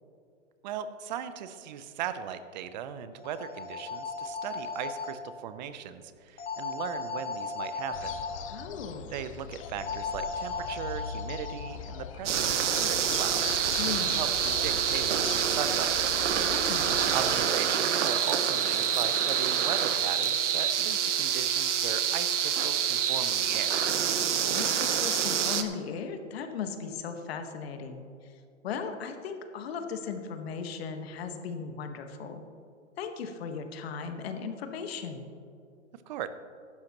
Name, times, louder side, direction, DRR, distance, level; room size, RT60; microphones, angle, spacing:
voice 1, 0.6-8.2 9.1-16.2 17.1-23.8 35.9-36.3, right 9 dB, 35° right, 12 dB, 0.6 m, -38 dB
sound 1, 3.2-5.1 6.4-8.4 9.8-11.8, left 4 dB, 75° left, 2.7 m, -36 dB
sound 2, 7.9-17.5, left 8 dB, 30° left, 0.4 m, -41 dB
voice 2, 8.5-9.1 13.8-14.2 16.4-17.1 24.5-28.3 28.6-32.4 33.0-35.3, left 6 dB, 50° left, 6 dB, 1.4 m, -37 dB
sound 3, 12.3-25.6, right 8 dB, 65° right, 1.1 m, -27 dB
15.0 x 12.0 x 3.0 m, 2.4 s
hypercardioid pair, 135°, 38 cm